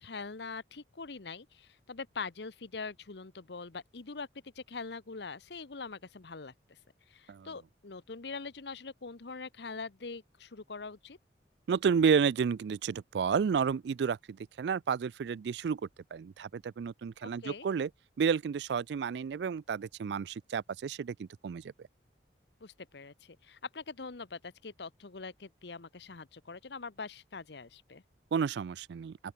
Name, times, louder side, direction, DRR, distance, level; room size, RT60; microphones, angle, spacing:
voice 1, 0.0-4.3 4.6-6.8 7.1-11.2 17.2-17.7 22.6-28.0, left 4 dB, 70° left, 0.9 m, -43 dB
voice 2, 11.7-15.8 16.1-17.9 18.2-21.7 28.3-29.2, right 6 dB, 70° right, 0.3 m, -31 dB
open air
head